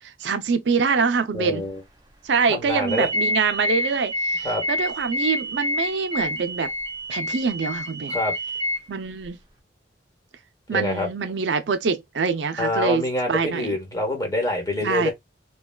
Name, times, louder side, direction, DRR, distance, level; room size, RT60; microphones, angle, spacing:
voice 1, 0.2-1.6 2.2-6.7 7.1-8.2 8.9-9.4 10.7-13.0 13.3-13.7 14.8-15.1, right 5 dB, 80° right, 0.5 m, -24 dB
voice 2, 1.3-1.8 2.5-3.1 4.4-4.6 8.1-8.3 10.7-11.1 12.6-15.1, left 1 dB, 20° left, 1.1 m, -26 dB
sound 1, 2.9-8.8, left 1 dB, 25° right, 0.7 m, -28 dB
3.3 x 2.3 x 2.2 m
head